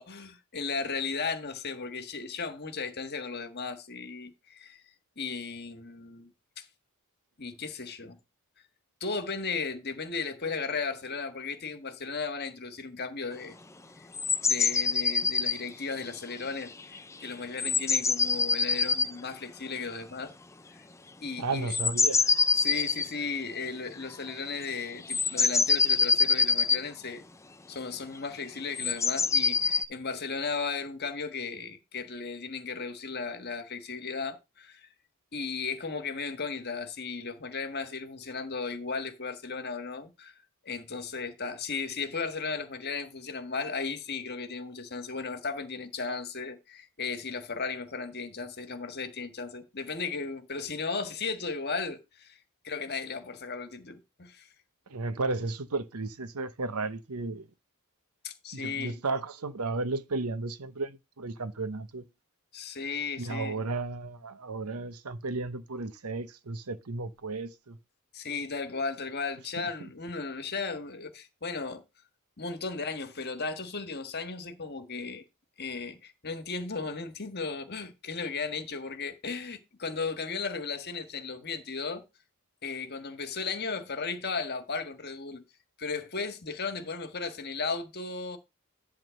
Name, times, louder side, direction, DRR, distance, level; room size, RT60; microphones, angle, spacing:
voice 1, 0.0-4.8 5.2-6.7 7.4-8.2 9.0-13.6 14.0-14.1 14.5-20.3 20.7-20.9 21.2-21.7 22.5-27.2 27.7-34.9 35.3-40.3 40.6-52.4 52.6-54.5 58.2-59.0 62.5-63.6 68.1-71.8 72.4-75.2 75.6-82.0 82.6-85.5 85.8-88.4, left 4 dB, 45° left, 1.5 m, -35 dB
sound 1, 14.1-15.6 16.8-17.0 17.2-17.3 17.6-19.1 21.7-23.1 24.3-24.4 24.6-24.7 25.1-26.8 28.8-29.8, left 5 dB, 15° left, 0.5 m, -25 dB
voice 2, 21.4-22.2 54.9-57.5 58.5-62.0 63.2-67.8, right 3 dB, 85° right, 0.9 m, -34 dB
11.0 x 3.7 x 6.3 m
head